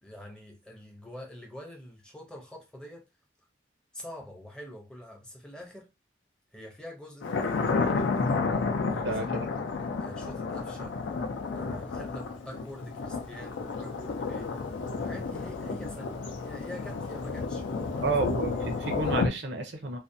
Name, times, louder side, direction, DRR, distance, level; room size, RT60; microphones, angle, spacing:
voice 1, 0.0-3.0 3.9-5.9 6.5-8.4 8.9-9.3 10.0-11.0 11.5-18.2, left 1 dB, 5° left, 0.5 m, -45 dB
Thunder, 7.2-19.3, left 4 dB, 85° left, 0.5 m, -31 dB
voice 2, 9.0-9.5 18.0-20.0, right 3 dB, 65° right, 0.5 m, -31 dB
2.5 x 2.1 x 2.5 m
head